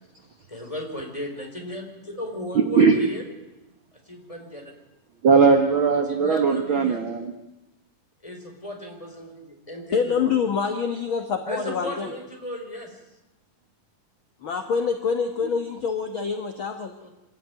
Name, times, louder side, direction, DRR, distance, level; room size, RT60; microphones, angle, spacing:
voice 1, 0.5-3.2 4.0-4.7 6.1-7.0 8.2-10.4 11.4-13.0 17.0-17.1, equal, 10° left, 1 dB, 4.6 m, -35 dB
voice 2, 2.6-3.0 5.2-7.3, right 5 dB, 50° right, 5 dB, 1.6 m, -19 dB
voice 3, 9.9-12.1 14.4-16.9, left 6 dB, 50° left, 6 dB, 1.7 m, -26 dB
26.0 x 14.0 x 9.6 m, 1.0 s
omnidirectional pair, 3.8 m